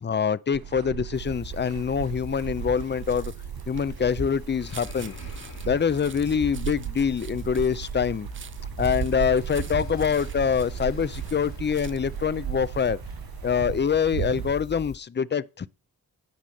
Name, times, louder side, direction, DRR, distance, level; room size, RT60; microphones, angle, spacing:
voice 1, 0.0-3.3 3.7-5.1 5.6-8.3 8.8-13.0 13.4-15.7, left 7 dB, 30° left, 0.4 m, -25 dB
sound 1, 0.5-14.6, right 11 dB, 85° right, 0.6 m, -37 dB
sound 2, 1.1-15.0, left 5 dB, 70° left, 2.7 m, -43 dB
sound 3, 2.0-12.2 12.6-12.9, right 7 dB, 35° right, 0.4 m, -40 dB
10.5 x 5.5 x 6.4 m
wide cardioid pair, 85°, 36 cm